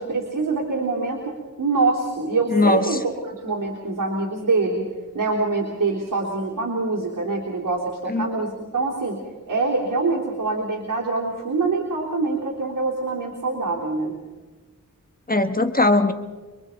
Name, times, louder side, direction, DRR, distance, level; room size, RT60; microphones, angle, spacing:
voice 1, 0.0-4.9 5.1-9.2 9.5-14.1, right 3 dB, 80° right, -4 dB, 3.7 m, -25 dB
voice 2, 2.5-3.0 8.1-8.3 15.3-16.1, left 2 dB, 25° left, 8 dB, 1.2 m, -19 dB
27.0 x 24.0 x 4.5 m, 1.3 s
wide cardioid pair, 95°, 32 cm